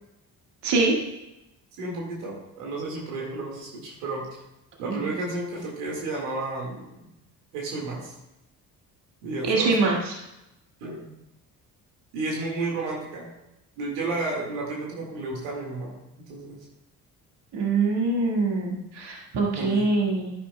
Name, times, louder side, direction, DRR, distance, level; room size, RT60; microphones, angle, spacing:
voice 1, 0.6-1.0 4.9-5.1 9.4-10.1 17.5-20.3, right 3 dB, 65° right, -1 dB, 1.9 m, -24 dB
voice 2, 1.8-4.4 4.8-6.9 7.5-8.2 9.2-10.0 10.8-11.1 12.1-13.3 13.8-15.9 16.3-16.6 19.6-19.9, right 2 dB, 85° right, -2 dB, 1.9 m, -32 dB
11.5 x 10.0 x 2.2 m, 0.91 s
hypercardioid pair, 50°, 44 cm